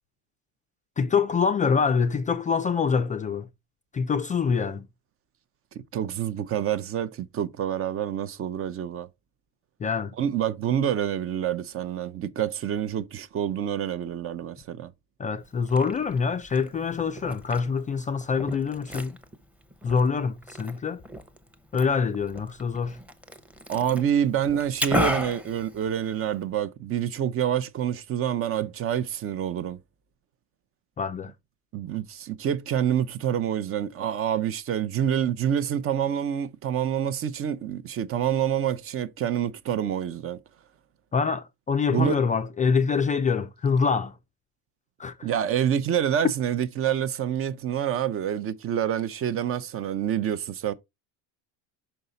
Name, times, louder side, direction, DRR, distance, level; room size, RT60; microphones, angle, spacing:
voice 1, 1.0-3.5 3.9-4.9 9.8-10.2 15.2-19.2 19.8-21.0 21.7-23.0 31.0-31.3 41.1-44.2 45.0-45.3, left 5 dB, 20° left, 0.4 m, -25 dB
voice 2, 5.9-9.1 10.2-14.9 23.7-29.8 31.7-40.4 41.9-42.2 45.2-50.7, right 9 dB, 35° right, 0.6 m, -27 dB
Liquid, 15.4-26.4, left 1 dB, 5° right, 0.8 m, -35 dB
5.7 x 5.5 x 3.9 m
cardioid pair, 130°, 40 cm